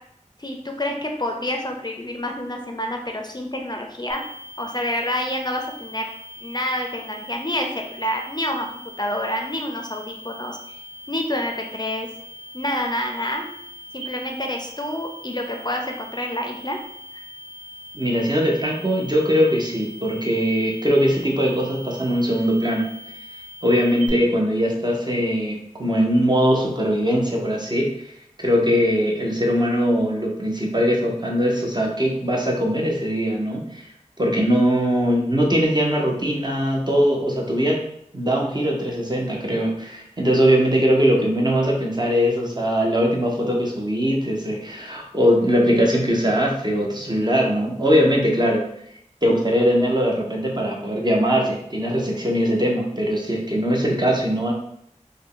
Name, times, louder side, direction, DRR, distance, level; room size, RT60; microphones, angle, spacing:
voice 1, 0.4-4.2 4.6-6.0 6.4-7.7 7.9-8.7 9.0-10.6 11.1-12.1 12.5-13.5 13.9-16.8 17.1-17.2, left 1 dB, 35° left, 2 dB, 0.4 m, -28 dB
sound 1, 4.1-24.1, equal, 80° right, 1.2 m, -41 dB
voice 2, 17.9-22.9 23.6-28.1 28.4-33.9 34.2-37.8 38.1-48.6 49.2-54.5, equal, 35° right, -2 dB, 0.8 m, -21 dB
3.4 x 2.2 x 3.7 m, 0.72 s
wide cardioid pair, 45°, 13 cm